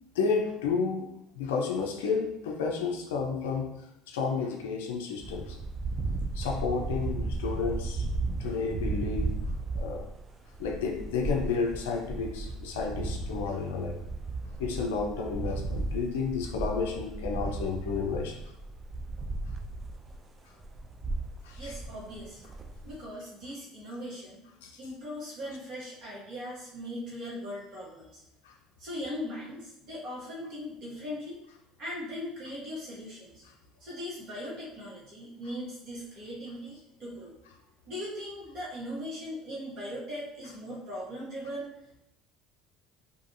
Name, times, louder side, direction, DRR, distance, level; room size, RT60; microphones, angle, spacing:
voice 1, 0.2-5.6 6.3-8.1 8.4-9.3 9.7-10.1 10.6-14.0 14.6-18.4 21.4-21.7 24.6-24.7 28.5-28.6, left 5 dB, 80° left, 2 dB, 0.3 m, -31 dB
sound 1, 5.2-20.2 20.6-23.0, right 3 dB, 30° right, 0.4 m, -35 dB
voice 2, 21.6-22.4 22.9-24.4 24.8-28.2 28.8-31.4 31.8-33.4 33.8-37.3 37.9-41.7, equal, 55° right, -6 dB, 1.3 m, -39 dB
2.6 x 2.5 x 2.5 m, 0.82 s
hypercardioid pair, 70°, 0 cm